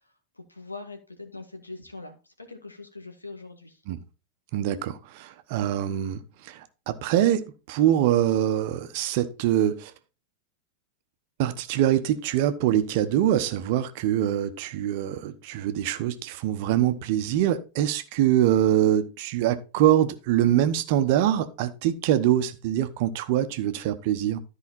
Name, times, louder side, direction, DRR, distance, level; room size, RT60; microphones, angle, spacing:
voice 1, 0.4-3.8, left 3 dB, 80° left, 1.7 m, -42 dB
voice 2, 4.5-9.9 11.4-24.4, right 11 dB, 50° right, 1.0 m, -24 dB
13.0 x 5.0 x 4.2 m
figure-of-eight pair, 90°, 0 cm